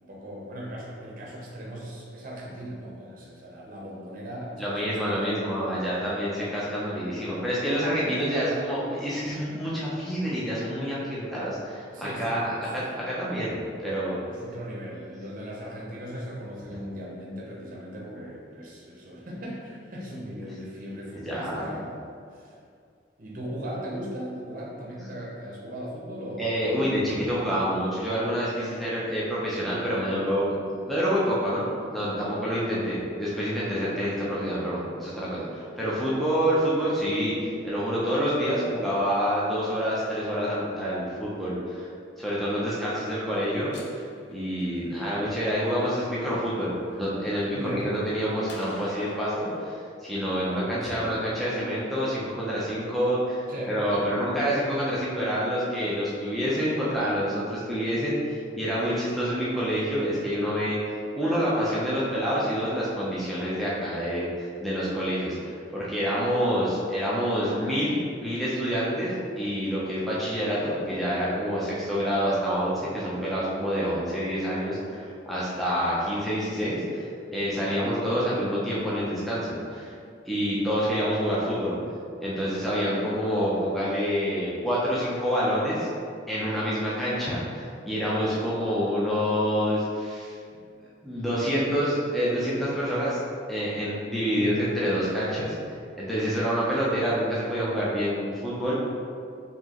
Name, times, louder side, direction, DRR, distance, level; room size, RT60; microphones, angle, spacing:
voice 1, 0.0-5.5 6.8-8.2 11.9-12.8 14.3-22.0 22.3-22.5 23.2-27.0 47.5-47.9 50.4-51.2 53.5-54.2 77.6-77.9 94.3-94.5, equal, 45° right, -3 dB, 0.8 m, -38 dB
voice 2, 4.6-14.2 21.2-21.8 26.4-30.6 30.9-41.9 42.2-43.8 44.3-60.8 61.1-79.9 80.3-81.7 82.2-85.9 86.3-90.3 91.0-93.2 93.5-95.5 96.0-98.7, equal, ahead, -8 dB, 0.5 m, -27 dB
sound 1, 43.3-45.1 45.7-46.5 46.9-49.6, left 2 dB, 60° left, 0.5 m, -45 dB
4.4 x 2.8 x 2.9 m, 2.3 s
head